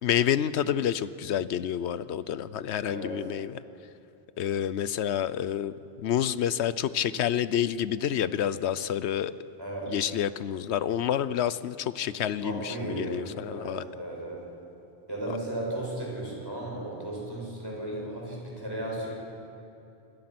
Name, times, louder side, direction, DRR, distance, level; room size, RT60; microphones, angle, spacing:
voice 1, 0.0-3.6 4.4-9.3 9.9-13.8, left 10 dB, 80° left, 15 dB, 1.0 m, -28 dB
voice 2, 2.9-3.2 9.6-10.0 12.4-14.4 15.1-19.1, right 1 dB, 20° right, -3 dB, 6.6 m, -35 dB
27.5 x 21.0 x 6.0 m, 2.8 s
omnidirectional pair, 1.1 m